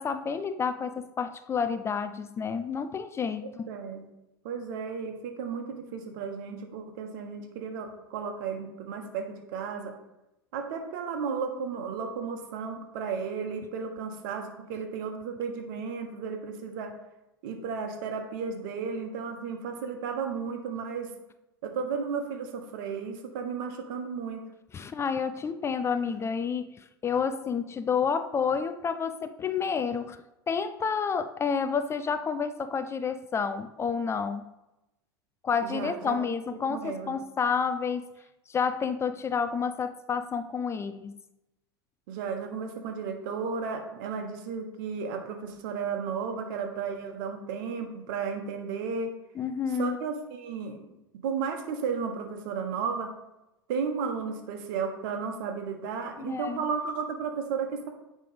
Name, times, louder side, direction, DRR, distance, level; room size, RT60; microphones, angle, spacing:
voice 1, 0.0-3.7 24.7-30.2 30.5-34.5 35.4-38.0 38.5-41.2 49.4-50.0 56.2-56.6, left 6 dB, 20° left, 11 dB, 0.4 m, -30 dB
voice 2, 3.7-4.1 4.4-9.9 10.5-16.9 17.4-21.1 21.6-24.4 35.6-36.2 36.7-37.1 42.1-49.1 49.7-50.8 51.2-53.1 53.7-57.9, right 6 dB, 60° right, 5 dB, 1.3 m, -34 dB
9.1 x 3.4 x 5.1 m, 0.93 s
figure-of-eight pair, 85°, 12 cm